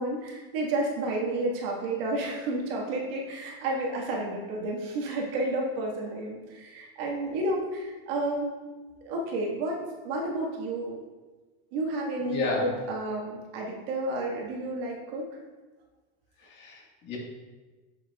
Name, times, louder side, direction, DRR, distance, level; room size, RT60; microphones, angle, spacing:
voice 1, 0.0-8.6 9.1-11.0 11.7-15.3, right 2 dB, 60° right, -1 dB, 1.8 m, -31 dB
voice 2, 12.2-12.7 16.4-17.2, left 3 dB, 30° left, -3 dB, 1.7 m, -31 dB
8.5 x 6.2 x 2.4 m, 1.3 s
supercardioid pair, 155°, 34 cm